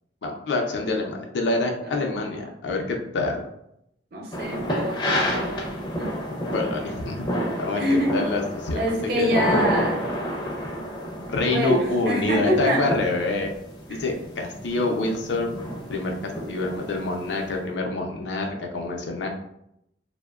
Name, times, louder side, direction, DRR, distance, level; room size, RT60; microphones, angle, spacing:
voice 1, 0.2-3.5 6.5-7.3 7.6-8.8 9.2-9.3 11.3-13.5 13.9-15.5 15.9-19.3, left 3 dB, 75° left, 2 dB, 0.5 m, -26 dB
voice 2, 4.1-6.1 7.8-8.1 8.8-10.0 11.4-12.8 18.8-18.9, equal, 60° right, -1 dB, 0.7 m, -26 dB
sound 1, 4.3-17.5, equal, 25° left, 0.4 m, -30 dB
2.7 x 2.1 x 2.3 m, 0.77 s
head